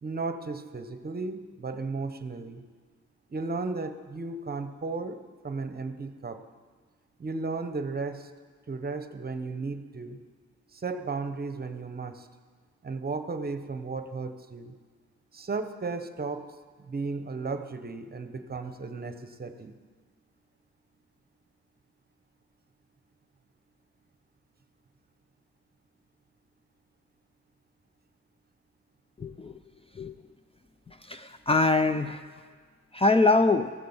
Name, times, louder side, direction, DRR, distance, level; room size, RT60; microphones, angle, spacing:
voice 1, 0.0-2.6 3.3-5.2 5.4-6.4 7.2-8.3 8.7-10.2 10.7-12.3 12.8-14.7 15.3-16.5 16.8-19.8, right 3 dB, 35° right, 9 dB, 1.0 m, -34 dB
voice 2, 29.2-29.6 30.0-30.1 30.9-32.2 32.9-33.7, left 3 dB, 20° left, 10 dB, 0.6 m, -24 dB
14.5 x 7.5 x 7.3 m, 1.5 s
cardioid pair, 70°, 29 cm